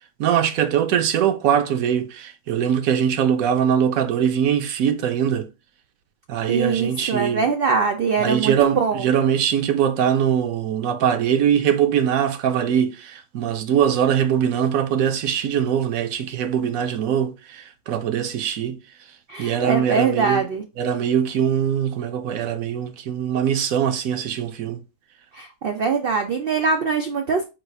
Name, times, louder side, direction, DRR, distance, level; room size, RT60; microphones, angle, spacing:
voice 1, 0.2-5.5 6.3-7.5 8.2-18.8 19.4-20.5 20.8-24.8, right 9 dB, 70° right, 1.0 m, -22 dB
voice 2, 6.5-9.0 19.3-20.6 25.3-27.4, right 5 dB, 90° right, 0.5 m, -22 dB
4.1 x 2.4 x 4.6 m
omnidirectional pair, 1.7 m